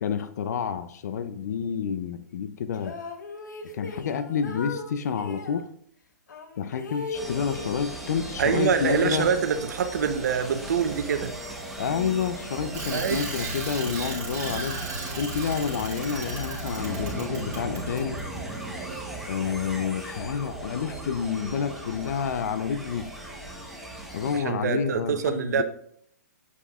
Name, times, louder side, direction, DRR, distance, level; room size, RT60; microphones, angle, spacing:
voice 1, 0.0-3.0 3.7-5.7 6.6-9.3 11.8-14.8 15.1-18.2 19.3-23.1 24.1-25.6, left 7 dB, 65° left, 12 dB, 0.5 m, -29 dB
sound 1, 2.7-5.6 6.3-8.3 8.6-9.7, left 4 dB, 85° left, 1.0 m, -39 dB
sound 2, 7.1-24.4, right 2 dB, ahead, 0.9 m, -37 dB
voice 2, 8.4-11.3 12.9-13.2 24.3-25.6, right 7 dB, 70° right, 9 dB, 0.8 m, -25 dB
Bicycle, 12.7-18.2, right 2 dB, 30° right, 2.7 m, -35 dB
8.2 x 5.6 x 2.4 m, 0.65 s
hypercardioid pair, 140°, 10 cm